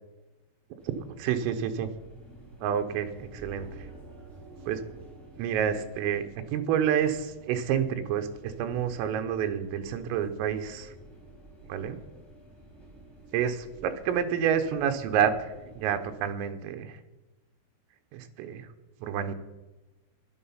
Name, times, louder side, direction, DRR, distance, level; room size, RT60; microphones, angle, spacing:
sound 1, 0.8-16.1, right 2 dB, ahead, 3.3 m, -50 dB
voice 1, 1.2-1.9 2.6-3.7 4.7-4.8 5.4-6.3 6.5-10.9 11.7-12.0 13.3-17.0 18.1-18.7 19.0-19.3, right 8 dB, 85° right, 8 dB, 3.6 m, -29 dB
12.5 x 11.0 x 5.6 m, 1.1 s
omnidirectional pair, 5.9 m